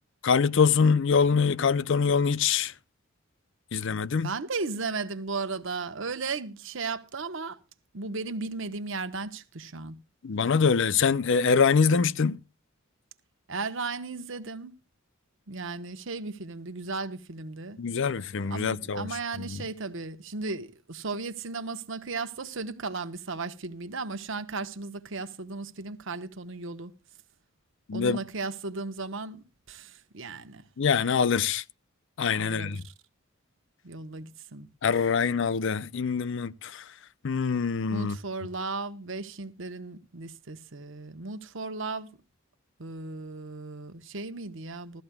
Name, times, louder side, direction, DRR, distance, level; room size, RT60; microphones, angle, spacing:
voice 1, 0.2-2.7 3.7-4.3 10.2-12.4 17.8-19.1 19.4-19.6 27.9-28.2 30.8-31.6 32.2-32.8 34.8-36.8 37.2-38.2, left 5 dB, 60° left, 0.5 m, -24 dB
voice 2, 4.2-7.6 7.9-10.0 13.5-14.7 15.5-17.8 18.5-26.9 27.9-30.6 32.3-32.9 33.8-34.7 37.9-42.2 42.8-45.0, right 3 dB, 65° right, 1.0 m, -35 dB
17.0 x 14.0 x 2.3 m
head